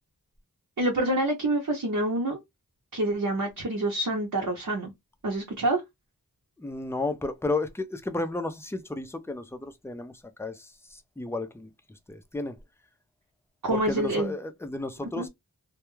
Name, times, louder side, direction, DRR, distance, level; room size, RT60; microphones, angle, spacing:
voice 1, 0.8-2.4 2.9-4.9 5.2-5.8 13.6-14.3 15.2-15.3, right 1 dB, 60° right, 0.8 m, -27 dB
voice 2, 6.6-11.7 12.1-12.6 13.7-15.3, left 2 dB, 5° left, 0.4 m, -33 dB
2.2 x 2.2 x 3.0 m
wide cardioid pair, 55°, 36 cm